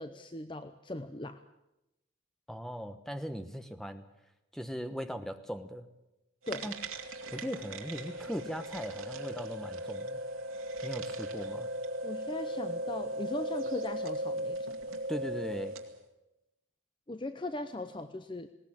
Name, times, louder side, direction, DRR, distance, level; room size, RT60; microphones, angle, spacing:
voice 1, 0.0-1.4 6.5-6.7 12.0-15.0 17.1-18.5, left 1 dB, 25° left, 10 dB, 0.7 m, -39 dB
voice 2, 2.5-4.0 4.5-5.9 6.6-6.8 7.3-10.2 10.8-11.7 15.1-15.8, equal, ahead, 8 dB, 1.1 m, -39 dB
sound 1, 6.4-16.0, right 1 dB, 90° right, 2.4 m, -38 dB
20.0 x 18.0 x 8.7 m, 0.93 s
head